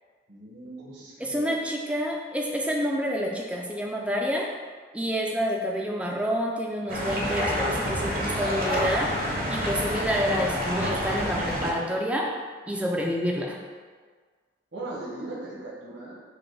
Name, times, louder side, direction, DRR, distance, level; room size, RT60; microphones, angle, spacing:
voice 1, 0.3-1.5 14.7-16.2, right 2 dB, 75° right, -6 dB, 1.2 m, -38 dB
voice 2, 1.2-4.5 4.9-9.1 9.5-12.3 12.7-13.6, equal, 5° right, -1 dB, 0.4 m, -28 dB
sound 1, 6.9-11.7, equal, 50° right, 0.7 m, -28 dB
5.0 x 2.2 x 4.6 m, 1.5 s
head